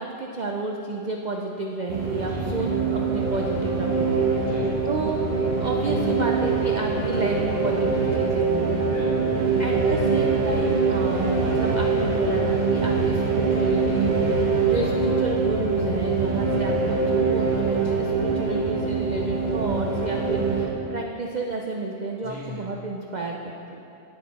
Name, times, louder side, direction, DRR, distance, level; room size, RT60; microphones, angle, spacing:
voice 1, 0.0-4.6 4.8-8.8 9.6-17.0 17.3-23.8, right 2 dB, 80° right, 1 dB, 0.4 m, -31 dB
sound 1, 1.9-20.7, right 4 dB, 35° right, 0.9 m, -23 dB
voice 2, 2.2-2.7 4.4-4.9 8.9-9.7 22.2-22.7, left 1 dB, 60° left, -8 dB, 2.7 m, -39 dB
9.5 x 8.0 x 4.1 m, 2.8 s
omnidirectional pair, 1.5 m